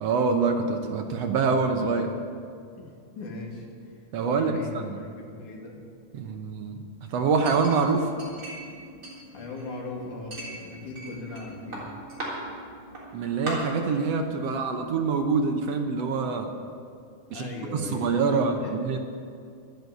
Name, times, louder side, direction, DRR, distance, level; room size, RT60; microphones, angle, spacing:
voice 1, 0.0-2.1 4.1-5.0 6.1-6.8 7.1-8.1 13.1-16.5 17.3-19.0, right 4 dB, 70° right, 5 dB, 1.8 m, -25 dB
voice 2, 2.8-3.7 4.3-5.8 9.3-11.9 17.3-18.7, left 3 dB, 85° left, -1 dB, 3.7 m, -38 dB
sound 1, 7.4-15.7, equal, 60° left, 3.7 m, -49 dB
Chink clink, 7.4-8.7 9.0-9.8 10.3-11.4 11.7-12.3 12.9-13.0 13.5-13.6, right 1 dB, 25° right, 3.8 m, -38 dB
12.0 x 10.5 x 8.3 m, 2.3 s
omnidirectional pair, 3.4 m